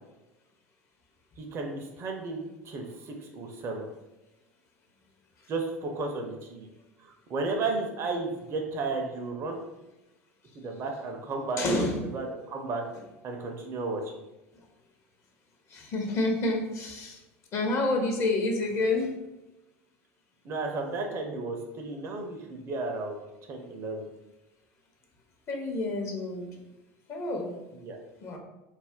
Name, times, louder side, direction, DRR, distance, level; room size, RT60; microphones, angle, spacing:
voice 1, 1.4-3.9 5.5-6.7 7.0-9.6 10.6-12.8 13.2-14.0 20.4-23.2 23.5-24.1 27.7-28.0, right 3 dB, 40° right, 2 dB, 0.5 m, -33 dB
voice 2, 11.6-12.2 15.7-17.2 17.5-19.2 25.5-26.5 27.1-27.6 28.2-28.4, left 2 dB, 40° left, 2 dB, 0.6 m, -28 dB
2.4 x 2.0 x 3.6 m, 1.0 s
hypercardioid pair, 75°, 7 cm